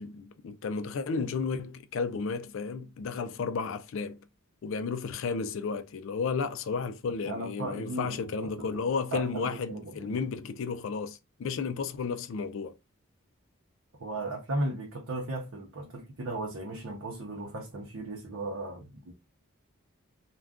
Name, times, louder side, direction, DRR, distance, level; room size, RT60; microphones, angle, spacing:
voice 1, 0.0-4.3 4.6-12.8, left 5 dB, 60° left, 0.4 m, -33 dB
voice 2, 7.2-8.2 9.1-10.3 14.0-19.1, right 2 dB, 65° right, 0.7 m, -36 dB
2.4 x 2.2 x 3.4 m
head